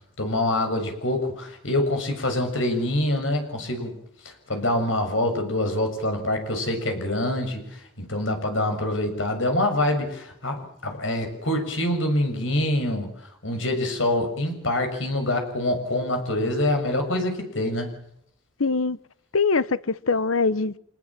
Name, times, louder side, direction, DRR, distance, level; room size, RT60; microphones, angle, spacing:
voice 1, 0.2-3.9 4.2-13.1 13.4-17.9, left 1 dB, 70° left, 7.0 m, -25 dB
voice 2, 18.6-19.0 19.3-20.8, left 4 dB, 85° left, 1.0 m, -23 dB
26.5 x 20.5 x 7.6 m
head